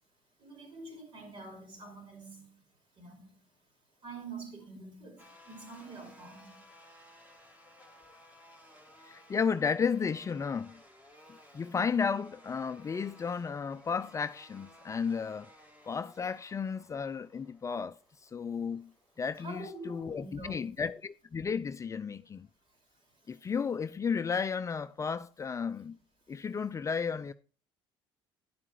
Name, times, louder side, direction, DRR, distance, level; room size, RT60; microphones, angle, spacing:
voice 1, 0.4-2.6 3.0-3.4 4.0-6.6 19.4-20.7 23.2-23.5, right 2 dB, 50° right, 5.1 m, -46 dB
sound 1, 5.2-20.0, equal, 15° right, 2.8 m, -58 dB
voice 2, 9.0-10.8 11.5-15.5 15.9-18.0 18.2-18.9 19.2-22.5 23.3-26.0 26.3-27.3, left 6 dB, 30° left, 0.5 m, -33 dB
10.5 x 7.5 x 4.7 m
supercardioid pair, 95°, 11 cm